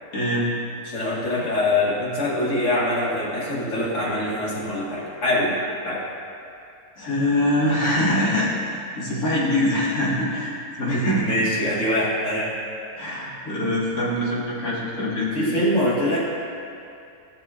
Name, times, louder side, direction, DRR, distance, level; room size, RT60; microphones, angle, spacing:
voice 1, 0.1-0.5 7.0-8.5 9.0-11.2 12.9-15.5, left 1 dB, 85° left, -7 dB, 2.3 m, -23 dB
voice 2, 0.9-5.6 5.9-6.0 10.9-12.5 15.3-16.2, left 1 dB, 55° left, -6 dB, 2.0 m, -23 dB
14.5 x 6.7 x 2.4 m, 2.5 s
omnidirectional pair, 1.5 m